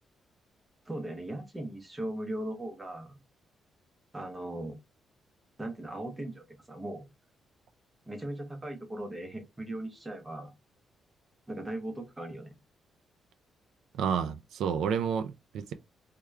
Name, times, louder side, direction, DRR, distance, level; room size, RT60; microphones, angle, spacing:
voice 1, 0.9-3.2 4.1-4.8 5.6-7.1 8.1-10.5 11.5-12.5, right 1 dB, 10° right, 0.7 m, -38 dB
voice 2, 14.0-15.7, right 7 dB, 80° right, 0.3 m, -30 dB
3.5 x 2.2 x 3.1 m
cardioid pair, 180°, 0 cm